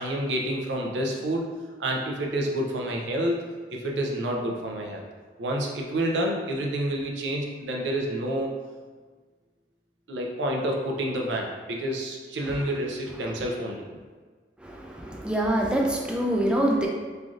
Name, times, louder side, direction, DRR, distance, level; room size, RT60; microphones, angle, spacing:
voice 1, 0.0-1.5 1.8-3.4 3.7-5.0 5.4-8.5 10.1-13.9, right 1 dB, 90° right, 0 dB, 0.5 m, -28 dB
voice 2, 14.6-16.9, right 1 dB, 5° right, -1 dB, 0.3 m, -25 dB
3.2 x 2.5 x 2.4 m, 1.5 s
head